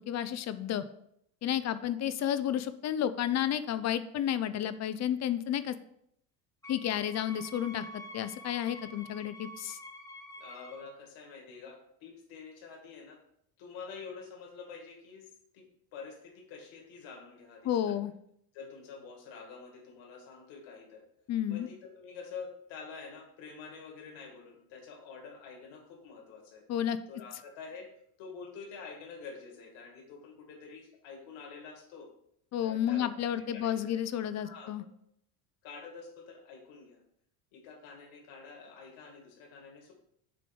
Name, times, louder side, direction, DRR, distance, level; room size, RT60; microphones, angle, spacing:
voice 1, 0.1-0.8 1.4-5.8 6.7-9.8 17.6-18.1 21.3-21.7 26.7-27.0 32.5-34.8, left 10 dB, 35° left, 13 dB, 0.4 m, -31 dB
Wind instrument woodwind instrument, 6.6-10.9, equal, 5° left, 1.0 m, -48 dB
voice 2, 10.4-13.2 13.6-15.3 15.5-15.6 15.9-18.0 18.5-21.0 21.5-26.6 27.1-27.9 28.2-32.1 32.6-34.0 34.4-34.7 35.6-37.0 37.5-39.9, left 5 dB, 65° left, 1 dB, 2.1 m, -47 dB
6.7 x 3.8 x 5.2 m, 0.73 s
supercardioid pair, 95°, 48 cm